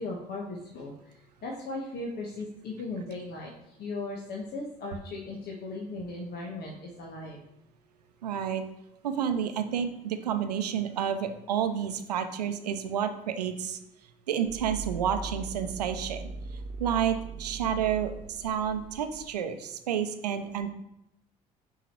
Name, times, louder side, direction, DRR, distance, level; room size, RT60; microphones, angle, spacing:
voice 1, 0.0-7.4, left 2 dB, 55° left, -2 dB, 1.4 m, -37 dB
voice 2, 8.2-8.6 9.0-13.8 14.3-16.3 16.8-20.7, right 8 dB, 90° right, 8 dB, 0.6 m, -30 dB
sound 1, 14.5-19.3, right 4 dB, 40° right, 0.7 m, -40 dB
6.2 x 4.9 x 4.5 m, 0.84 s
hypercardioid pair, 55°, 20 cm